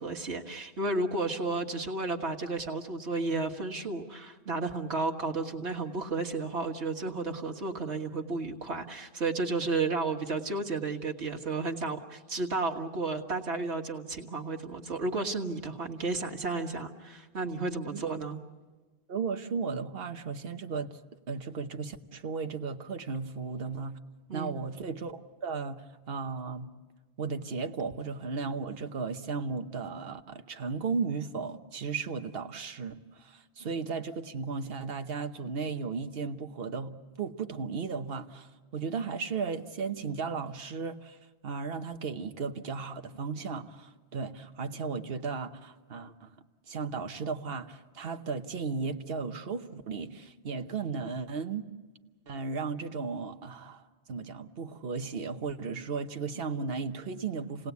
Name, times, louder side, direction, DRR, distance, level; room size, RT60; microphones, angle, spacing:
voice 1, 0.0-18.4 24.3-24.6, right 3 dB, 85° right, 1 dB, 1.9 m, -32 dB
voice 2, 17.7-18.0 19.1-21.0 21.3-24.0 24.3-25.8 26.1-26.7 27.2-41.2 41.4-46.3 46.7-51.7 52.3-57.7, right 5 dB, 65° right, 7 dB, 1.2 m, -35 dB
28.5 x 18.5 x 8.3 m, 1.3 s
omnidirectional pair, 1.1 m